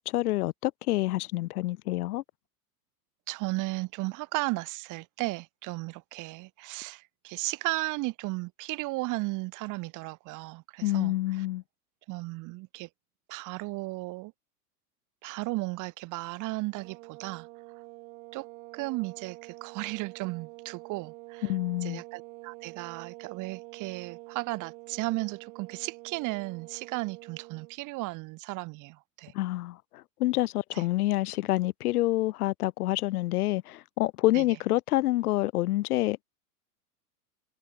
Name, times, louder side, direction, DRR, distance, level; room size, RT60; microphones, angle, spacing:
voice 1, 0.1-2.2 10.8-11.6 21.4-22.0 29.3-29.8 30.2-36.2, left 17 dB, 75° left, 0.9 m, -27 dB
voice 2, 3.3-11.5 12.1-12.9 13.3-14.3 15.2-17.5 18.3-18.4 18.7-21.5 21.8-29.3 30.7-30.8 34.3-34.5, right 22 dB, 40° right, 1.2 m, -35 dB
sound 1, 16.7-27.8, right 27 dB, 60° right, 3.1 m, -47 dB
hypercardioid pair, 105°, 46 cm